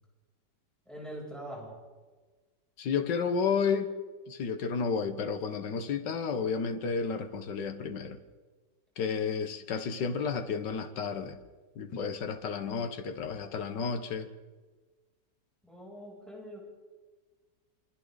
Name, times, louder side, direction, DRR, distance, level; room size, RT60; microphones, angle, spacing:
voice 1, 0.9-1.8 15.6-16.6, equal, ahead, -4 dB, 7.8 m, -43 dB
voice 2, 2.8-3.9 4.3-8.2 9.0-11.4 11.8-14.3, left 5 dB, 75° left, 8 dB, 1.9 m, -31 dB
28.0 x 24.0 x 4.1 m, 1.4 s
omnidirectional pair, 1.9 m